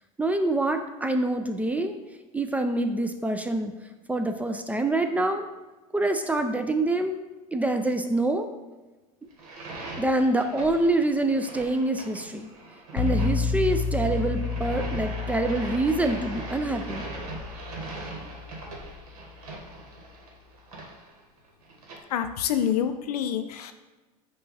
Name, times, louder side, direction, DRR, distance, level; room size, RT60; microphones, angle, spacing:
voice 1, 0.2-2.0 2.3-3.7 4.1-5.4 5.9-7.2 7.5-8.5 10.0-12.5 12.9-17.1, right 2 dB, 10° right, 6 dB, 0.3 m, -26 dB
sound 1, 9.3-22.0, right 2 dB, 75° right, 1.3 m, -41 dB
sound 2, 13.0-18.7, left 4 dB, 60° left, 0.8 m, -31 dB
voice 2, 22.1-23.7, left 9 dB, 90° left, 9 dB, 0.4 m, -27 dB
5.4 x 2.4 x 4.1 m, 1.2 s
hypercardioid pair, 100°, 19 cm